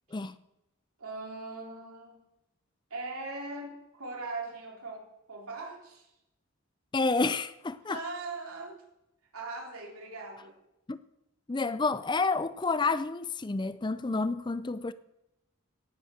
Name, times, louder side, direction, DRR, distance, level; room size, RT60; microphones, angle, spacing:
voice 1, 1.0-2.2 2.9-6.1 7.9-8.8 9.3-10.6, right 3 dB, 90° right, 3.7 m, -40 dB
voice 2, 6.9-8.0 10.9-11.0 11.5-14.9, left 3 dB, 20° left, 0.4 m, -29 dB
18.0 x 8.0 x 6.5 m
head